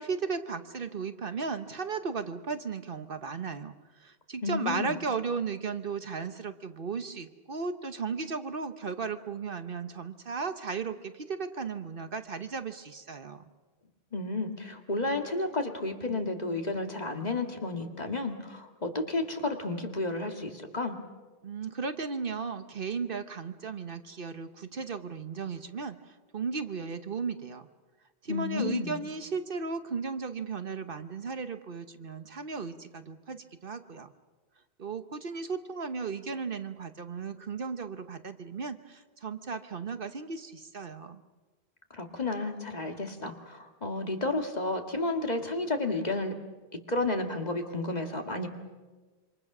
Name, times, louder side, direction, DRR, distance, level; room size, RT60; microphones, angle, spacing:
voice 1, 0.0-3.7 4.0-13.4 21.4-27.7 28.2-34.1 34.8-41.2, right 5 dB, 55° right, 9 dB, 1.2 m, -35 dB
voice 2, 4.4-5.0 14.1-21.0 28.3-29.0 41.9-46.3 46.9-48.5, left 2 dB, 40° left, 4 dB, 2.1 m, -32 dB
27.0 x 25.5 x 6.1 m, 1.3 s
omnidirectional pair, 1.1 m